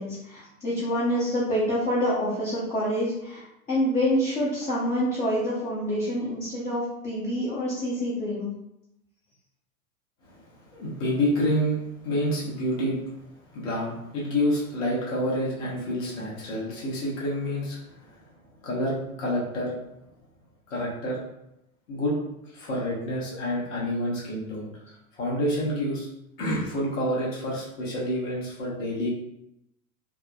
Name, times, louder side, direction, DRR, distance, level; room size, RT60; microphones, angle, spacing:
voice 1, 0.0-8.5, equal, 15° left, -8 dB, 0.6 m, -27 dB
voice 2, 10.2-11.8 12.0-13.0 13.5-18.2 18.6-19.7 20.7-21.2 21.9-22.2 22.5-24.7 25.2-26.1 26.4-29.1, equal, 55° left, -5 dB, 1.1 m, -28 dB
3.4 x 2.0 x 2.2 m, 0.83 s
figure-of-eight pair, 90°, 45 cm